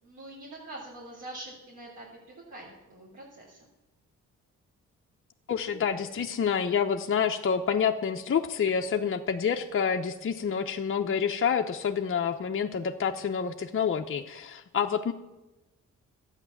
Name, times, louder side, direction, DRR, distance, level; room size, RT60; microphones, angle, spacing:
voice 1, 0.0-3.7, right 1 dB, 70° right, -5 dB, 3.5 m, -45 dB
voice 2, 5.5-15.1, left 7 dB, 45° left, 3 dB, 0.9 m, -28 dB
12.5 x 9.1 x 7.1 m, 1.0 s
cardioid pair, 65°, 31 cm